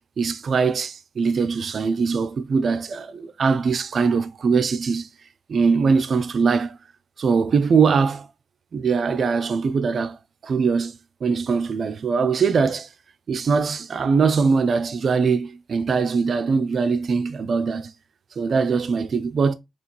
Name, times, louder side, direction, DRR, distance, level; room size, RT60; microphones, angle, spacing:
voice 1, 0.2-5.1 5.5-6.8 7.2-8.3 8.7-10.2 10.4-11.0 11.2-12.9 13.3-17.9 18.4-19.5, right 5 dB, 65° right, 0.5 m, -21 dB
4.2 x 2.9 x 2.9 m
cardioid pair, 65°, 0 cm